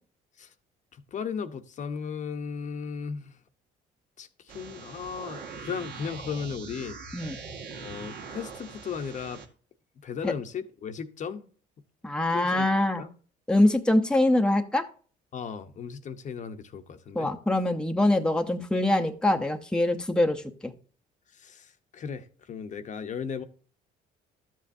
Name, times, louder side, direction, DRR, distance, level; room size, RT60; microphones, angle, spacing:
voice 1, 0.9-3.4 4.2-7.0 7.7-9.4 10.0-11.5 12.3-13.1 15.3-17.3 21.3-23.4, left 6 dB, 45° left, 0.9 m, -36 dB
sound 1, 4.5-9.5, right 5 dB, 65° right, 1.8 m, -42 dB
voice 2, 12.0-13.1 13.5-14.9 17.1-20.7, left 1 dB, 5° left, 0.8 m, -24 dB
12.5 x 7.5 x 2.7 m
cardioid pair, 110°, 17 cm